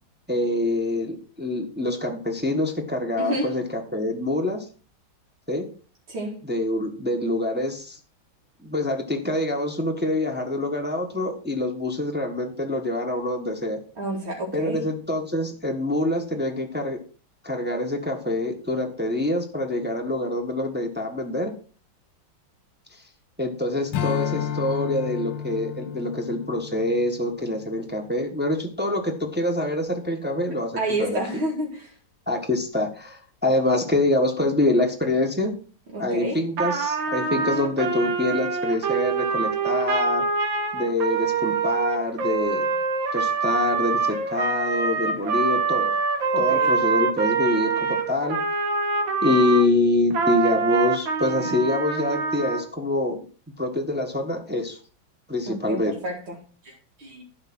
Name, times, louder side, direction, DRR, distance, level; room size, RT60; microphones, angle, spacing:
voice 1, 0.3-4.7 5.5-5.7 6.4-8.0 8.6-13.8 14.5-17.0 17.4-21.5 23.4-31.2 32.3-35.5 36.0-40.3 40.7-42.7 43.1-45.9 46.4-48.4 49.2-53.2 53.6-54.8 55.3-56.0, left 2 dB, 5° right, 2 dB, 1.1 m, -25 dB
voice 2, 3.2-3.5 6.1-6.4 14.0-14.8 30.8-31.9 35.9-36.4 46.3-46.7 55.5-56.4 56.6-57.2, right 1 dB, 90° right, -3 dB, 2.9 m, -29 dB
Strum, 23.9-28.6, left 8 dB, 70° left, 1.5 m, -32 dB
Trumpet, 36.6-49.7 50.1-52.6, right 4 dB, 75° right, 2.2 m, -25 dB
11.5 x 5.0 x 6.1 m, 0.39 s
omnidirectional pair, 2.2 m